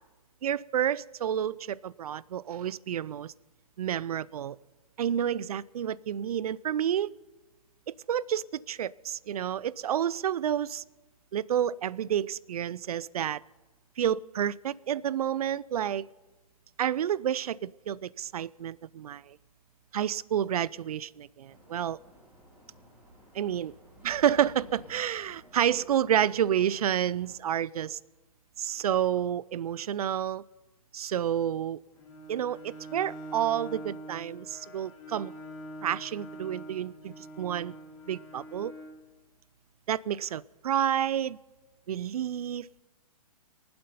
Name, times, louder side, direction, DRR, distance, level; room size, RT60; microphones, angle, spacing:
voice 1, 0.4-3.3 3.8-4.6 5.0-7.1 8.1-10.8 11.3-13.4 14.0-16.1 16.8-19.4 19.9-22.0 23.3-23.7 24.0-28.0 28.6-30.4 30.9-31.8 32.3-35.3 35.8-37.7 38.1-38.7 39.9-41.4 41.9-42.7, right 10 dB, 75° right, 22 dB, 0.4 m, -29 dB
sound 1, 21.5-27.4, equal, 5° right, 3.5 m, -55 dB
Bowed string instrument, 31.9-39.0, right 1 dB, 55° left, 3.5 m, -44 dB
23.5 x 7.8 x 5.5 m, 1.2 s
hypercardioid pair, 140°, 19 cm